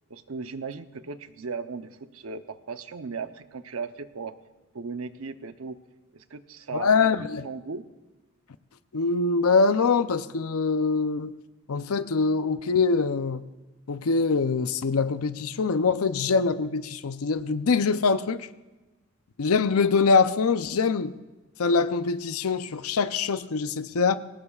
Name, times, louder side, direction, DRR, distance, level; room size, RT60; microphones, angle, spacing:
voice 1, 0.1-4.3 4.7-5.8 6.1-7.9, right 4 dB, 75° right, 0.7 m, -37 dB
voice 2, 6.7-7.5 8.9-11.3 11.7-13.4 13.9-18.5 19.4-21.1 21.6-24.2, left 4 dB, 85° left, 0.6 m, -24 dB
21.5 x 18.5 x 2.4 m
head